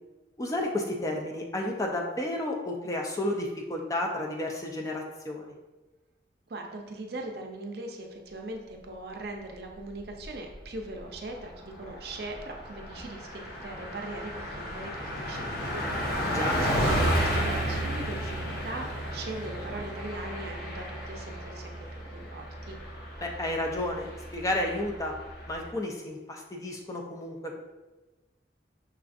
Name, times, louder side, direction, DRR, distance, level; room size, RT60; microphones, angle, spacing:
voice 1, 0.4-5.5 16.2-16.6 23.2-25.1 25.5-27.6, left 1 dB, 20° left, 0 dB, 0.3 m, -32 dB
voice 2, 6.5-21.7 22.1-22.8, right 2 dB, 60° right, 2 dB, 0.5 m, -40 dB
Car passing by, 10.0-10.6 11.0-11.1 11.4-25.7, equal, 55° left, 0.8 m, -33 dB
5.6 x 2.4 x 2.5 m, 1.1 s
head